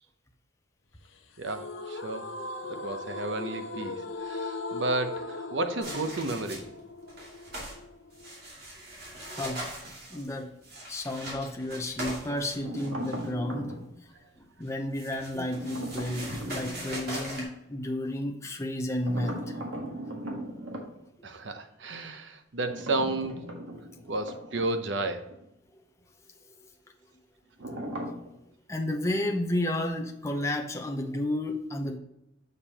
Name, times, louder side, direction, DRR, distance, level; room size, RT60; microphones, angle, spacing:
sound 1, 1.4-8.5, left 2 dB, 75° left, 0.8 m, -38 dB
voice 1, 1.4-2.3 2.7-6.7 10.1-10.2 21.2-23.4 24.1-25.3, right 2 dB, 65° right, 7 dB, 0.8 m, -32 dB
sound 2, 5.8-6.8 7.1-7.8 8.1-13.3 14.6-17.4, right 1 dB, 50° right, 2.5 m, -40 dB
voice 2, 9.3-9.7 10.1-10.5 10.9-13.7 14.4-19.4 23.9-24.0 28.7-32.0, left 1 dB, 15° left, 3 dB, 0.7 m, -32 dB
sound 3, 12.6-13.9 15.5-16.9 19.0-20.9 22.6-25.0 25.3-25.4 27.6-28.3, right 1 dB, 85° right, 1.7 m, -38 dB
7.2 x 6.7 x 2.9 m, 0.86 s
head